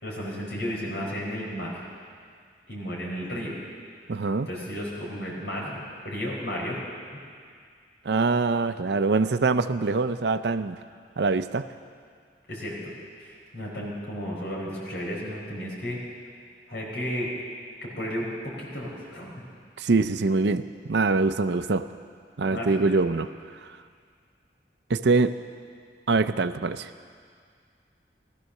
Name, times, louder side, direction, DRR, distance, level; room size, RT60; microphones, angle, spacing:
voice 1, 0.0-1.8 2.7-3.5 4.5-6.8 12.5-16.0 16.7-17.3 17.8-19.5 22.5-22.9, equal, 75° left, -3 dB, 4.5 m, -33 dB
voice 2, 4.1-4.5 8.1-10.8 11.2-11.6 19.8-20.6 20.9-21.9 22.4-23.3 24.9-25.4 26.1-26.9, right 3 dB, 75° right, 11 dB, 0.5 m, -23 dB
15.5 x 14.0 x 6.6 m, 2.1 s
head